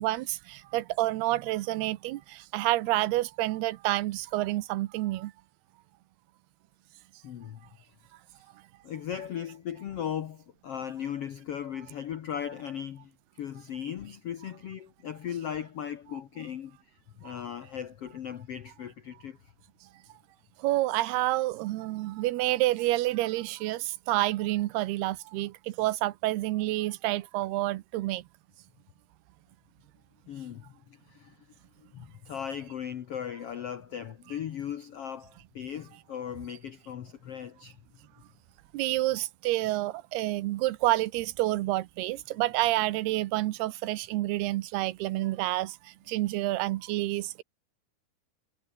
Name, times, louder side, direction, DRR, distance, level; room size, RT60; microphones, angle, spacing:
voice 1, 0.0-5.3 20.6-28.2 38.7-45.8 46.1-47.4, right 17 dB, 85° right, 3.0 m, -28 dB
voice 2, 7.2-7.6 8.3-8.5 8.8-19.5 30.3-31.4 31.9-37.8, left 9 dB, 80° left, 1.3 m, -38 dB
omnidirectional pair, 4.5 m